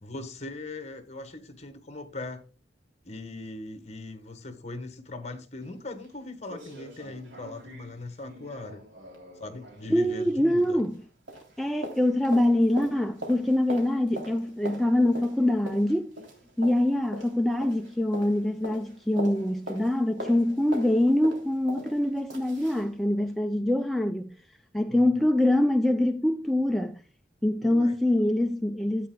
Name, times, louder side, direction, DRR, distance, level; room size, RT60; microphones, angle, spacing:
voice 1, 0.0-2.4 3.0-8.8 9.4-10.8 24.9-25.2 27.6-28.0, left 2 dB, 35° left, 1.5 m, -40 dB
sound 1, 5.6-5.7 6.0-6.1 6.5-11.0 11.3-22.9 23.3-23.4, equal, 75° right, 3.2 m, -42 dB
voice 2, 9.9-11.0 11.6-16.1 16.6-24.4 24.7-27.0 27.4-29.1, left 1 dB, ahead, 0.4 m, -24 dB
12.5 x 8.5 x 2.3 m
head